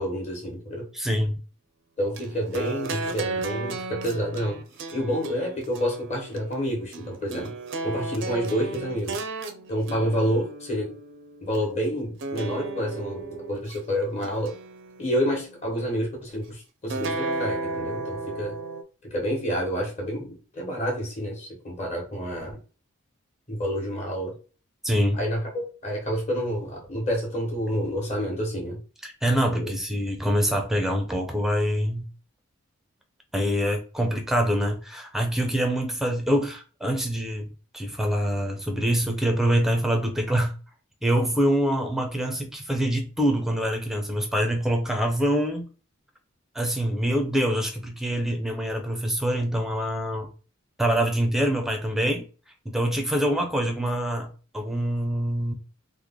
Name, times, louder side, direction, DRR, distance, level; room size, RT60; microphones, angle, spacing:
voice 1, 0.0-0.9 2.0-4.6 4.9-7.5 7.8-9.2 9.7-10.9 11.4-14.5 15.0-18.5 19.1-22.6 23.5-24.3 25.1-28.8 29.5-29.7, equal, 35° left, 1.2 m, -28 dB
voice 2, 0.9-1.3 24.8-25.2 29.0-32.1 33.3-37.5 37.7-40.5 41.0-45.7 46.5-50.3 50.8-52.3 52.7-55.5, equal, ahead, 0.5 m, -25 dB
sound 1, 2.2-11.6 12.2-13.8 14.2-15.3 16.9-18.8, right 3 dB, 60° right, 0.5 m, -34 dB
3.2 x 2.1 x 3.6 m
head